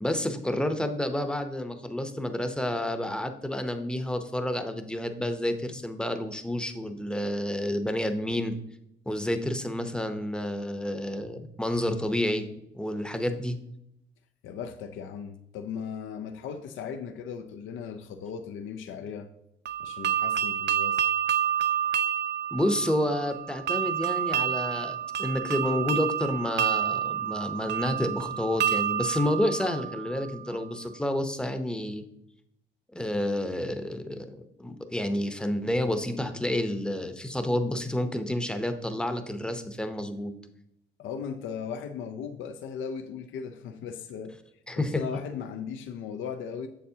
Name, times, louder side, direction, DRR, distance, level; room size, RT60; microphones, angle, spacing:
voice 1, 0.0-8.5 9.1-12.5 12.7-13.6 22.5-32.0 32.9-40.3 44.7-45.0, left 1 dB, 5° left, 0.7 m, -29 dB
voice 2, 14.4-19.3 19.8-21.0 41.0-44.3 44.8-46.7, left 7 dB, 80° left, 0.5 m, -37 dB
sound 1, 19.7-30.5, right 9 dB, 60° right, 0.4 m, -29 dB
7.2 x 7.0 x 2.8 m
cardioid pair, 90°, 20 cm